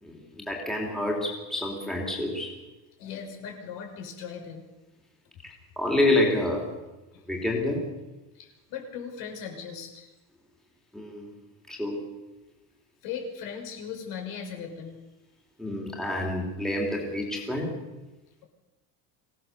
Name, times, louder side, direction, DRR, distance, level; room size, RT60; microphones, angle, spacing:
voice 1, 0.0-2.5 5.4-6.7 7.3-7.9 10.9-11.3 11.7-12.0 15.6-17.8, left 1 dB, ahead, -2 dB, 3.3 m, -28 dB
voice 2, 3.0-4.7 7.1-7.2 8.3-10.1 13.0-15.0, left 6 dB, 65° left, 4 dB, 5.6 m, -38 dB
25.5 x 17.5 x 6.9 m, 1.1 s
cardioid pair, 175°, 38 cm